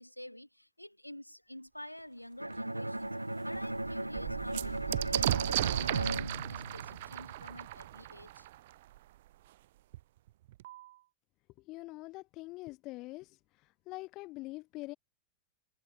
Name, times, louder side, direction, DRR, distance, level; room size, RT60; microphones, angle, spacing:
voice 1, 0.0-3.1 3.4-8.5, left 1 dB, 90° left, 4.9 m, -48 dB
Bowed string instrument, 2.4-7.3, right 1 dB, 85° right, 0.6 m, -37 dB
sound 1, 2.5-2.6 3.1-3.2 3.4-9.0 9.9-10.0 10.3-10.9, right 15 dB, 55° right, 0.9 m, -35 dB
voice 2, 11.7-13.4 13.9-15.0, left 21 dB, 40° left, 0.5 m, -44 dB
figure-of-eight pair, 90°, 0 cm